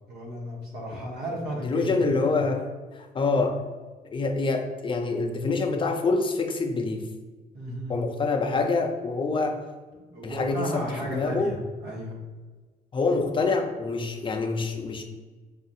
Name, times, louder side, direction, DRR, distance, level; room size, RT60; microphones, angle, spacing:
voice 1, 0.1-2.4 7.5-7.9 10.0-12.2, equal, 90° right, -2 dB, 1.0 m, -34 dB
voice 2, 1.6-2.7 3.1-3.7 4.1-7.0 7.9-9.6 10.2-11.5 12.9-15.0, left 3 dB, 30° left, 4 dB, 0.4 m, -26 dB
4.7 x 2.4 x 2.7 m, 1.3 s
cardioid pair, 120°, 16 cm